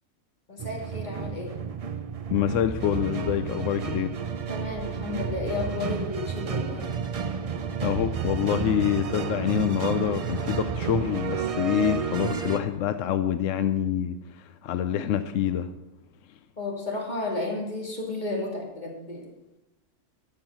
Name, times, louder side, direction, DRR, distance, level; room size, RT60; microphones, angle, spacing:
voice 1, 0.5-1.5 4.5-6.9 16.6-19.3, left 2 dB, 35° left, -1 dB, 2.3 m, -32 dB
sound 1, 0.6-12.6, right 6 dB, 65° right, 0.3 m, -31 dB
voice 2, 2.3-4.1 7.8-15.7, left 10 dB, 70° left, 11 dB, 0.9 m, -26 dB
12.5 x 6.0 x 6.9 m, 0.96 s
omnidirectional pair, 1.4 m